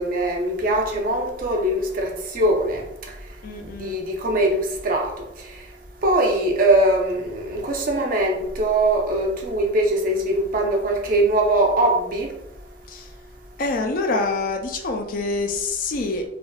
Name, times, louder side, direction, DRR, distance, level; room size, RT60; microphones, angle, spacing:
voice 1, 0.0-2.8 3.8-5.1 6.0-12.3, right 1 dB, 50° right, 0.5 m, -21 dB
voice 2, 3.4-4.0 12.9-13.1 13.6-16.2, left 3 dB, 50° left, 0.4 m, -26 dB
3.3 x 2.4 x 2.3 m
head